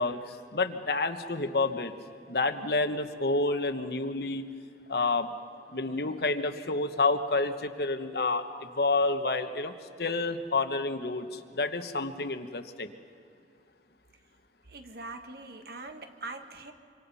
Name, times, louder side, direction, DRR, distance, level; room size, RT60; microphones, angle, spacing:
voice 1, 0.0-1.9 2.3-4.5 4.9-5.3 5.7-9.7 10.0-12.9, left 3 dB, 60° left, 8 dB, 1.2 m, -29 dB
voice 2, 14.7-16.7, right 3 dB, 60° right, 6 dB, 1.7 m, -42 dB
25.5 x 25.5 x 5.6 m, 2.5 s
head